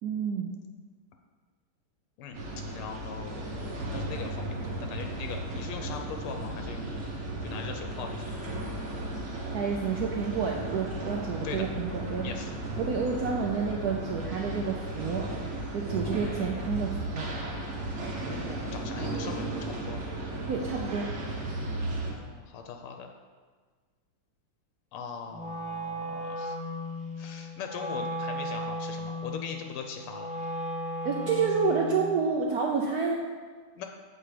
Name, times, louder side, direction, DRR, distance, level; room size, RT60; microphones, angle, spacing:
voice 1, 0.0-0.6 9.5-12.4 12.8-15.3 15.7-17.3 20.5-21.1 31.0-33.2, right 5 dB, 85° right, 0 dB, 0.8 m, -29 dB
sound 1, 2.3-22.1, right 1 dB, 45° right, 1.0 m, -35 dB
voice 2, 2.7-7.0 7.4-8.4 11.4-11.7 12.2-12.5 16.0-16.5 18.0-20.1 22.0-23.1 24.9-26.7 27.2-30.3 33.7-33.9, left 6 dB, 85° left, 4 dB, 1.5 m, -41 dB
Wind instrument woodwind instrument, 25.3-32.0, equal, 5° right, 1.0 m, -35 dB
7.4 x 4.6 x 4.9 m, 1.5 s
omnidirectional pair, 2.4 m